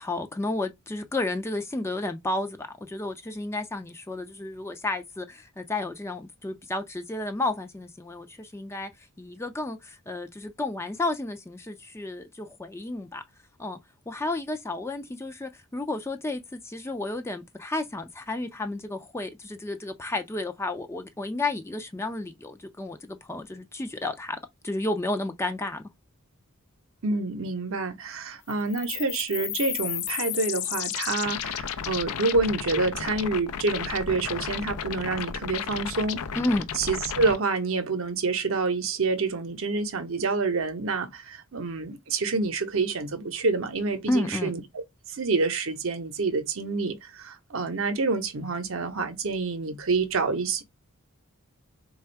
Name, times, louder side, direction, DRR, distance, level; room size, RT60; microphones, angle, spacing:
voice 1, 0.0-8.9 9.2-13.2 13.6-13.8 14.1-24.4 24.6-25.8 36.4-36.7 44.1-44.5, left 2 dB, 10° left, 0.4 m, -32 dB
voice 2, 27.0-36.2 36.8-44.8 45.1-50.6, right 3 dB, 65° right, 0.8 m, -27 dB
sound 1, 28.5-37.4, left 9 dB, 85° left, 0.5 m, -33 dB
3.4 x 2.3 x 4.4 m
head